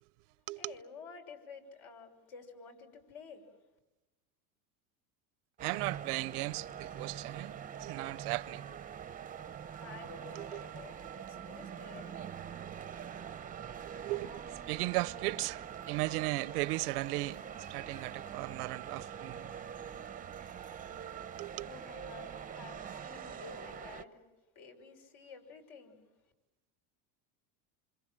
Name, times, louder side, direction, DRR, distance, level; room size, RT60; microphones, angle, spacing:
voice 1, 0.6-3.5 9.8-12.3 20.9-24.2 24.5-26.0, left 4 dB, 60° left, 6.1 m, -51 dB
sound 1, 5.6-24.0, right 8 dB, 20° right, 0.8 m, -44 dB
voice 2, 5.6-8.7 10.4-10.6 13.8-19.5 21.4-21.7, right 21 dB, 80° right, 0.8 m, -37 dB
28.0 x 25.5 x 7.6 m
supercardioid pair, 135°, 44 cm